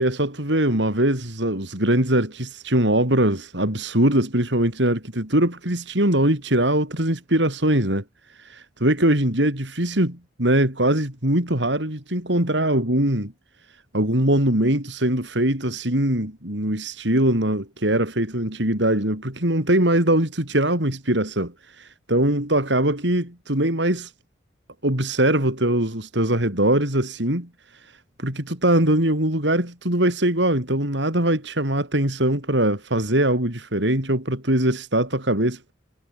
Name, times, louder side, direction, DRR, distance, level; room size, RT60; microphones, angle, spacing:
voice 1, 0.0-8.0 8.4-13.3 13.9-24.1 24.8-27.5 28.2-35.7, right 1 dB, 70° right, 5.7 m, -22 dB
head